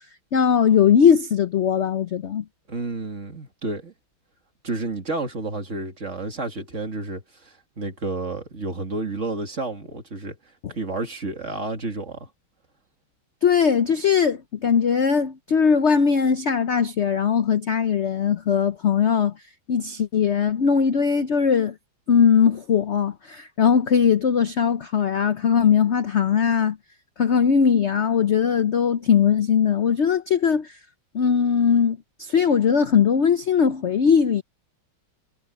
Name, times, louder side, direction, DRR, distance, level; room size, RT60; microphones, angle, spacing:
voice 1, 0.3-2.4 13.4-19.3 19.7-21.7 22.1-26.8 27.2-30.7 31.1-34.4, left 7 dB, 65° left, 0.6 m, -20 dB
voice 2, 2.7-3.9 4.6-10.4 10.7-12.3, right 3 dB, 35° right, 2.6 m, -30 dB
omnidirectional pair, 2.2 m